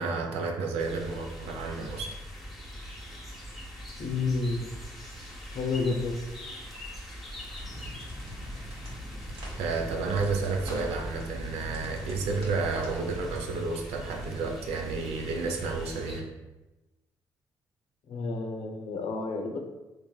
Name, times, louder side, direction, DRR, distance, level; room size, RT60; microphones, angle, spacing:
voice 1, 0.0-2.2 9.6-16.3, right 4 dB, 75° right, 3 dB, 0.5 m, -31 dB
sound 1, 0.8-16.2, equal, ahead, 1.1 m, -43 dB
voice 2, 4.0-4.7 5.5-6.2 18.1-19.6, left 3 dB, 65° left, 2 dB, 0.5 m, -30 dB
sound 2, 7.6-13.5, equal, 55° right, 1.2 m, -41 dB
3.2 x 2.5 x 2.2 m, 1.0 s
hypercardioid pair, 45°, 11 cm